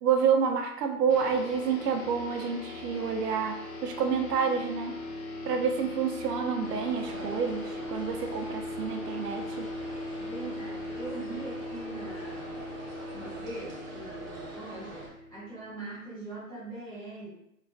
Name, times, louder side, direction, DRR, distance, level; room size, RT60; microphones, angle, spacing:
voice 1, 0.0-4.9 5.4-9.7, right 6 dB, 80° right, 4 dB, 0.6 m, -28 dB
sound 1, 1.1-15.9, left 2 dB, 65° left, 0.7 m, -39 dB
sound 2, 6.6-15.1, right 2 dB, 60° right, 1.1 m, -44 dB
voice 2, 10.2-12.7 13.1-17.3, right 2 dB, 10° right, -15 dB, 0.4 m, -42 dB
2.4 x 2.3 x 2.2 m, 0.79 s
hypercardioid pair, 155°, 46 cm